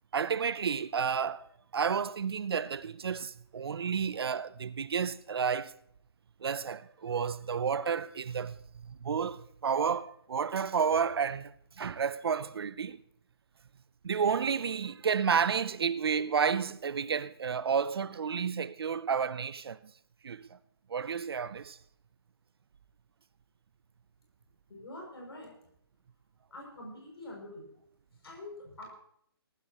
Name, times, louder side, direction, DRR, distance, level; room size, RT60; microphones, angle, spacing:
voice 1, 0.1-1.5 1.7-5.7 6.4-8.5 8.9-11.5 11.8-13.0 14.0-19.8 20.2-20.5 20.9-21.8, right 6 dB, 70° right, 0.6 m, -31 dB
voice 2, 24.7-25.5 26.5-27.7 28.2-28.9, left 1 dB, 75° left, 6.6 m, -45 dB
19.0 x 15.5 x 3.0 m
hypercardioid pair, 155°, 13 cm